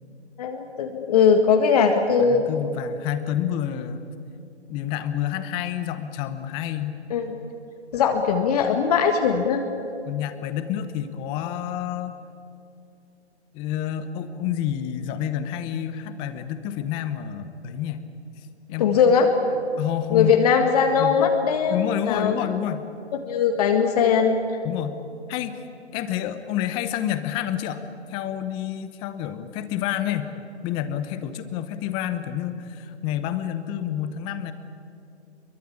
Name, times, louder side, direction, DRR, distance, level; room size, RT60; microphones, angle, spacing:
voice 1, 0.4-2.4 7.1-7.4 7.9-9.6 18.8-19.3 20.1-22.3 23.2-24.4, left 6 dB, 35° left, 4 dB, 1.7 m, -20 dB
voice 2, 2.2-4.0 4.7-7.0 10.1-12.1 13.5-18.0 18.7-19.1 19.8-20.3 21.0-21.2 21.7-22.9 24.6-25.0 25.3-25.6 25.9-27.8 28.1-30.3 30.6-34.5, left 11 dB, 15° left, 11 dB, 0.9 m, -29 dB
24.0 x 22.5 x 8.5 m, 2.7 s
hypercardioid pair, 145°, 34 cm